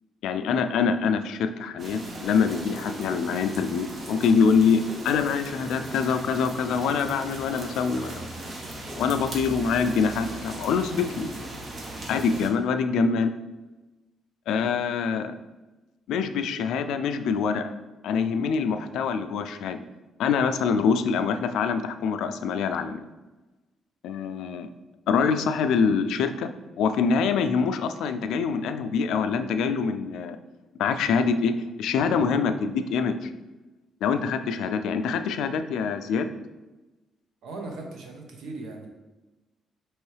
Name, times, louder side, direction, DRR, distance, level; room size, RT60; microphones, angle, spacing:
voice 1, 0.2-8.3 9.0-11.3 12.1-13.3 14.5-15.3 16.1-17.7 18.0-19.8 20.2-23.0 24.0-24.7 25.1-26.5 26.8-30.4 30.8-33.3 34.0-36.3, left 5 dB, 80° left, 9 dB, 0.3 m, -25 dB
sound 1, 1.8-12.5, right 1 dB, 45° right, 0.9 m, -38 dB
sound 2, 2.5-3.5 4.0-4.2 4.8-5.1 5.8-6.0 6.6-6.7 7.0-7.2 7.8-7.9 8.8-9.0, left 2 dB, 20° left, 1.0 m, -44 dB
voice 2, 37.4-38.9, right 2 dB, 80° right, 2 dB, 0.8 m, -38 dB
5.3 x 3.0 x 3.2 m, 1.1 s
cardioid pair, 90°, 0 cm